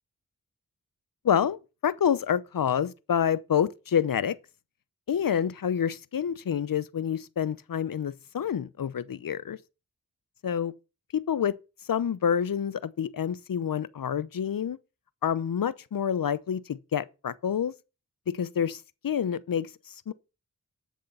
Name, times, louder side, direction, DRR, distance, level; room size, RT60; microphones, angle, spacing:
voice 1, 1.2-1.6 1.8-4.4 5.1-9.6 10.4-10.7 11.1-11.6 11.9-14.8 15.2-17.7 18.3-20.1, left 8 dB, 70° left, 0.8 m, -28 dB
13.0 x 6.6 x 5.5 m
cardioid pair, 45°, 34 cm